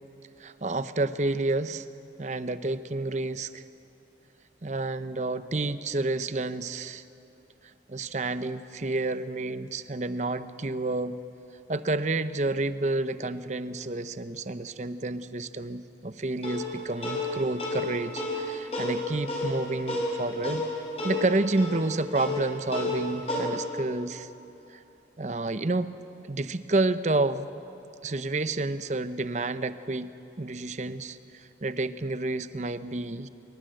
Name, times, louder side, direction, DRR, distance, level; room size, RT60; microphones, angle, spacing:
voice 1, 0.4-1.9 2.2-3.6 4.6-7.0 7.9-11.2 11.7-20.6 21.0-24.3 24.7-24.8 25.2-25.9 26.3-27.5 28.0-30.1 30.4-33.3, right 2 dB, 40° right, 12 dB, 0.8 m, -30 dB
sound 1, 16.4-23.4, left 1 dB, 35° left, 5.8 m, -32 dB
25.0 x 23.0 x 7.8 m, 2.9 s
head